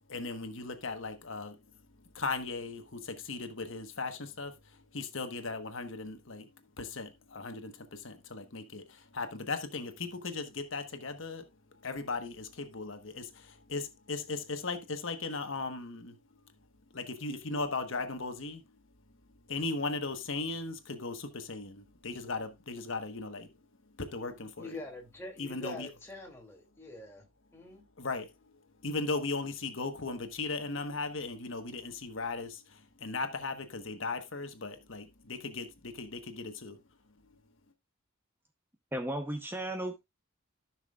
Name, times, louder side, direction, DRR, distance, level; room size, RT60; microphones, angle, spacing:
voice 1, 0.1-1.6 2.1-6.5 6.8-16.2 16.9-18.6 19.5-23.5 24.0-24.8 25.4-25.9 28.0-28.3 28.8-36.8, left 3 dB, 70° left, 1.2 m, -37 dB
voice 2, 24.6-27.2 27.5-27.8, left 1 dB, 10° left, 2.5 m, -45 dB
voice 3, 38.9-40.1, right 1 dB, 10° right, 0.8 m, -35 dB
14.5 x 6.0 x 2.4 m
head